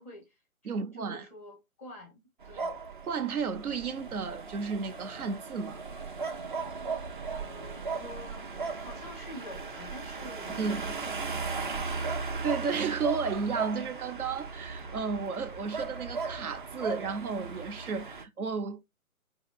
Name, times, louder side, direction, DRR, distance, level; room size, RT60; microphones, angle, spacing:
voice 1, 0.0-2.8 7.3-12.2, left 1 dB, 10° left, 0.5 m, -48 dB
voice 2, 0.6-1.3 3.1-5.8 10.6-10.8 12.2-18.8, right 5 dB, 75° right, 0.8 m, -33 dB
sound 1, 2.4-18.2, right 4 dB, 35° right, 0.5 m, -37 dB
3.7 x 2.9 x 2.3 m
hypercardioid pair, 145°, 44 cm